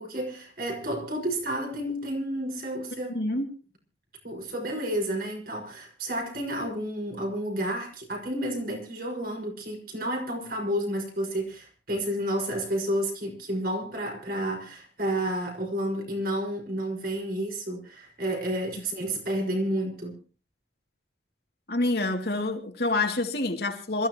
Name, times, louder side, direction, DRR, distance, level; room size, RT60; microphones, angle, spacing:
voice 1, 0.0-3.1 4.2-20.2, right 1 dB, 55° right, 2 dB, 6.0 m, -31 dB
voice 2, 3.1-3.5 21.7-24.1, left 2 dB, 60° left, 3 dB, 2.8 m, -27 dB
26.5 x 14.5 x 3.1 m, 0.36 s
head